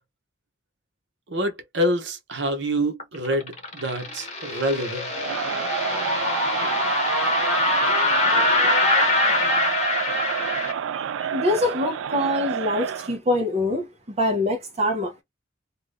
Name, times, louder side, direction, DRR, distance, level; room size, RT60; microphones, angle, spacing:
voice 1, 1.3-5.1, equal, 65° right, 0.8 m, -26 dB
sound 1, 3.0-10.7, left 2 dB, 35° left, 0.9 m, -23 dB
Crowd, 5.1-13.2, right 8 dB, 85° right, 0.3 m, -29 dB
voice 2, 11.2-15.2, left 1 dB, 35° right, 0.6 m, -24 dB
2.6 x 2.3 x 3.3 m
head